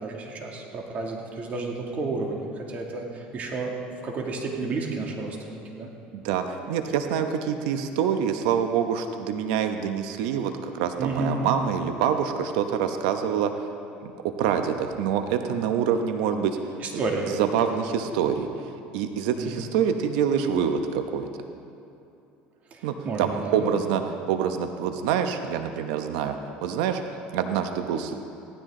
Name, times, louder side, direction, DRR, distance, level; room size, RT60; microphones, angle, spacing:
voice 1, 0.0-3.7 4.0-5.9 11.0-11.4 16.8-17.8 19.4-19.7 22.7-23.7, right 3 dB, 40° right, 0 dB, 2.5 m, -31 dB
voice 2, 6.1-13.5 14.0-16.6 17.4-21.3 22.8-24.0 24.3-27.0 27.3-28.1, right 8 dB, 85° right, 6 dB, 1.0 m, -26 dB
17.5 x 13.0 x 3.9 m, 2.7 s
supercardioid pair, 110°, 4 cm